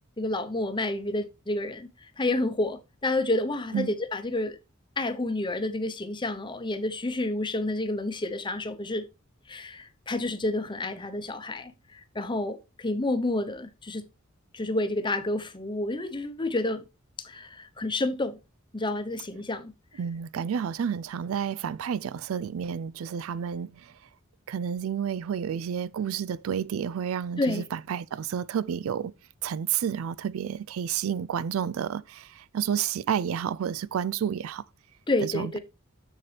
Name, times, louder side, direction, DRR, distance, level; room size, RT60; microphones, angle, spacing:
voice 1, 0.2-4.6 5.0-9.1 9.5-14.0 14.5-16.8 17.2-18.4 18.7-19.7 27.4-27.7 35.1-35.6, left 2 dB, 25° left, 0.8 m, -29 dB
voice 2, 20.0-23.9 24.5-29.1 29.4-34.6 35.2-35.6, right 8 dB, 90° right, 0.4 m, -30 dB
7.5 x 6.8 x 3.3 m
head